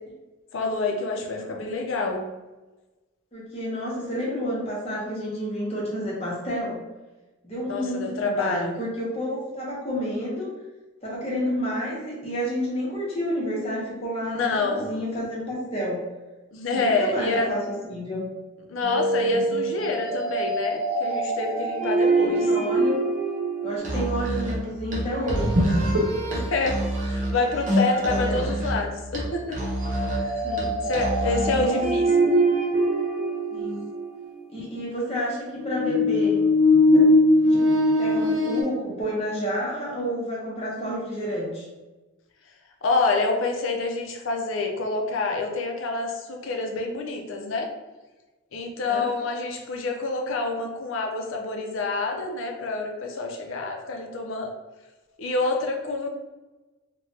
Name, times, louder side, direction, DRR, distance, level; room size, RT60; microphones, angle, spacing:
voice 1, 0.5-2.2 7.7-8.7 14.3-14.9 16.5-17.5 18.7-22.5 26.3-29.6 30.1-30.4 30.9-32.1 42.8-47.7 48.5-54.5 55.2-56.1, left 3 dB, 70° left, 2 dB, 0.5 m, -27 dB
voice 2, 3.3-6.8 7.4-10.5 11.0-16.0 16.7-18.2 22.2-23.0 23.6-25.6 27.9-28.5 30.4-30.8 31.4-31.8 33.5-33.8 34.5-36.4 36.9-37.0 37.4-37.7 38.0-41.7 48.9-49.1, equal, 30° left, -5 dB, 0.8 m, -30 dB
sound 1, 18.8-24.1 25.2-26.5 26.9-27.1 27.7-28.2 29.8-34.3 35.5-38.6, equal, 80° right, 0.8 m, -23 dB
Musical instrument, 23.8-31.7, equal, 35° right, 0.6 m, -28 dB
3.1 x 2.2 x 2.7 m, 1.2 s
head